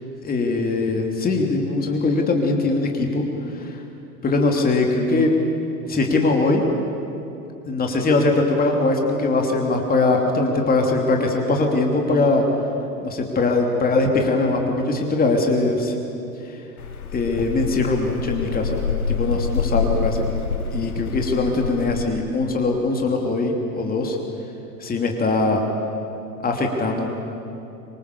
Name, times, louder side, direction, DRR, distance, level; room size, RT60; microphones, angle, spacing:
voice 1, 0.2-3.8 4.2-5.3 5.8-6.6 7.7-12.4 13.0-15.9 16.4-16.6 17.1-18.8 19.1-20.3 20.7-24.2 24.8-25.6 26.4-27.1, left 3 dB, 20° left, 2 dB, 3.0 m, -21 dB
sound 1, 16.8-22.0, left 5 dB, 70° left, 1.7 m, -26 dB
25.5 x 24.5 x 7.1 m, 2.8 s
figure-of-eight pair, 85°, 45 cm